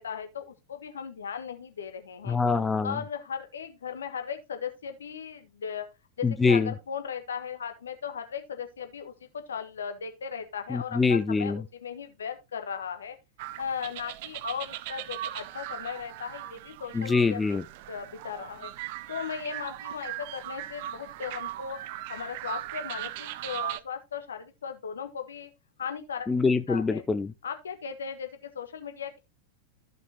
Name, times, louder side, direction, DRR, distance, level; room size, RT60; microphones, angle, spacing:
voice 1, 0.0-2.4 2.8-5.9 6.2-13.2 13.6-17.4 17.9-18.7 19.1-21.8 22.1-25.5 25.8-26.3 26.7-27.0 27.4-29.2, left 7 dB, 65° left, 1.4 m, -37 dB
voice 2, 2.3-3.0 6.2-6.7 10.7-11.6 16.9-17.6 26.3-27.3, left 4 dB, 10° left, 0.6 m, -24 dB
sound 1, 13.4-23.8, right 14 dB, 50° right, 0.5 m, -39 dB
14.5 x 5.4 x 2.9 m
figure-of-eight pair, 90°, 0 cm